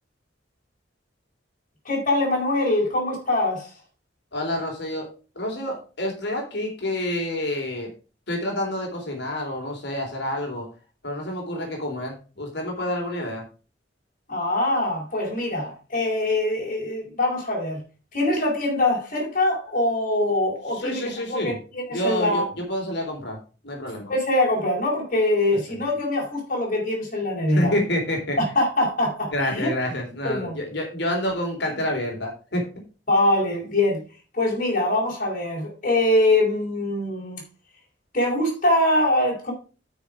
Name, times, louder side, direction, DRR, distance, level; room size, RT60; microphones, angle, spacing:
voice 1, 1.8-3.7 14.3-17.8 18.1-21.0 21.3-22.5 24.1-27.7 28.5-29.7 30.2-30.5 33.1-34.0 34.3-37.4 38.1-39.5, left 1 dB, 45° left, -3 dB, 4.5 m, -23 dB
voice 2, 4.3-5.1 5.4-7.9 8.3-10.7 11.0-13.4 20.8-21.6 21.9-23.4 23.6-24.1 27.5-28.4 29.3-32.6, left 1 dB, 65° left, 1 dB, 3.5 m, -28 dB
9.4 x 6.3 x 4.9 m, 0.35 s
head